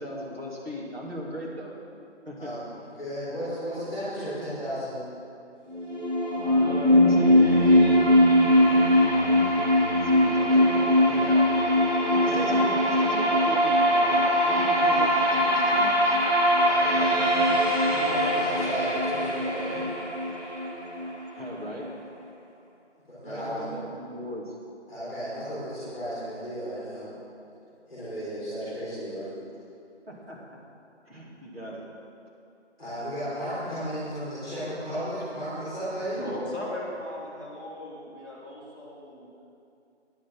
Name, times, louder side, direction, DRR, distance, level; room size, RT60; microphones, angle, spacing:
voice 1, 0.0-1.7 2.3-2.5 6.4-8.1 9.1-11.5 12.1-16.2 21.3-21.9 23.2-24.5 30.1-30.4 31.1-31.8, equal, 55° right, -4 dB, 2.7 m, -38 dB
voice 2, 2.4-5.0 12.4-12.9 16.6-19.8 23.1-23.7 24.9-27.1 27.9-29.3 32.8-36.2, equal, ahead, -24 dB, 2.6 m, -34 dB
sound 1, 5.7-21.7, equal, 90° right, 2.3 m, -21 dB
voice 3, 36.2-39.3, left 1 dB, 20° right, -11 dB, 1.5 m, -37 dB
9.8 x 6.6 x 7.6 m, 2.6 s
figure-of-eight pair, 170°, 35 cm